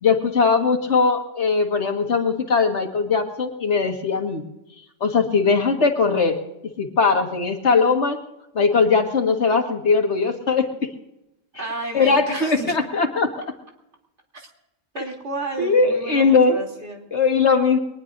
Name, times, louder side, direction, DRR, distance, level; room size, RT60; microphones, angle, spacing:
voice 1, 0.0-4.4 5.0-6.4 6.8-8.2 8.5-10.7 11.9-13.3 15.6-16.6 17.1-17.8, left 4 dB, 85° left, 4 dB, 2.1 m, -19 dB
voice 2, 11.5-12.7 14.3-14.5 14.9-17.1, right 2 dB, 85° right, 0 dB, 3.5 m, -32 dB
22.5 x 20.0 x 2.6 m, 0.89 s
omnidirectional pair, 1.1 m